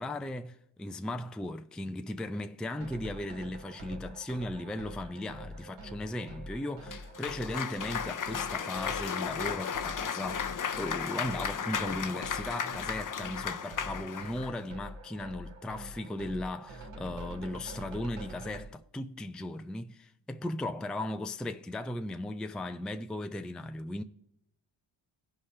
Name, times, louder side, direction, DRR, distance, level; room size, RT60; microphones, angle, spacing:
voice 1, 0.0-24.0, left 1 dB, ahead, 0.4 m, -37 dB
sound 1, 2.8-18.7, right 1 dB, 75° right, 1.6 m, -46 dB
Cheering / Applause, 6.9-14.6, left 7 dB, 40° left, 0.6 m, -35 dB
15.5 x 5.6 x 3.3 m
cardioid pair, 55°, 50 cm